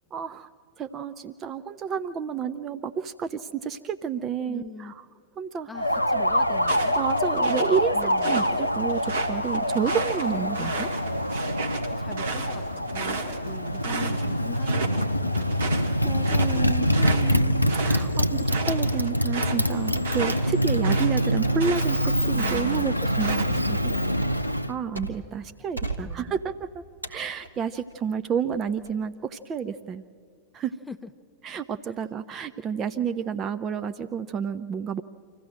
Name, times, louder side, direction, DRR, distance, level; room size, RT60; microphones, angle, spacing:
voice 1, 0.1-0.5 0.8-5.0 5.4-5.7 7.0-10.9 16.0-23.5 23.8-23.9 24.7-30.0 30.5-30.7 31.4-35.0, right 7 dB, 30° right, 10 dB, 0.5 m, -30 dB
voice 2, 4.5-4.9 5.7-7.0 7.9-8.4 11.9-16.0 22.3-23.0 25.8-26.4 30.9-31.1 31.9-32.0, left 3 dB, 5° left, 8 dB, 0.8 m, -43 dB
Motorcycle, 5.7-24.7, equal, 85° left, 0.5 m, -25 dB
sound 1, 6.6-8.5 8.9-14.2 14.5-15.0 15.3-22.0 22.3-23.8, right 4 dB, 60° right, 1.7 m, -33 dB
sound 2, 16.7-16.9 17.3-17.9 18.2-18.4 18.9-25.4 25.8-26.6 27.0-28.0 28.5-28.9, right 2 dB, 85° right, 1.5 m, -39 dB
26.0 x 15.0 x 7.7 m, 2.3 s
figure-of-eight pair, 90°, 0 cm